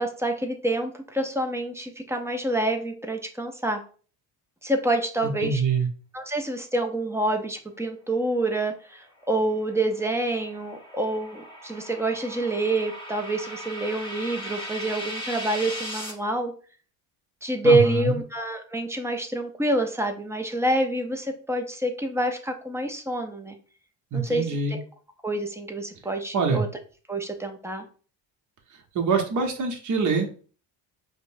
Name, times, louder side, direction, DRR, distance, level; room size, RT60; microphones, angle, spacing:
voice 1, 0.0-3.8 4.6-5.6 6.1-16.5 17.4-23.5 24.1-24.4 24.7-24.8 25.2-26.7 27.1-27.8, right 2 dB, 5° right, 4 dB, 0.6 m, -27 dB
voice 2, 5.2-5.9 17.6-18.2 24.1-24.8 26.3-26.7 28.9-30.4, right 4 dB, 45° right, 3 dB, 1.0 m, -24 dB
sound 1, 9.3-16.1, equal, 10° left, 1.2 m, -38 dB
5.1 x 2.2 x 2.6 m, 0.40 s
supercardioid pair, 90°, 43 cm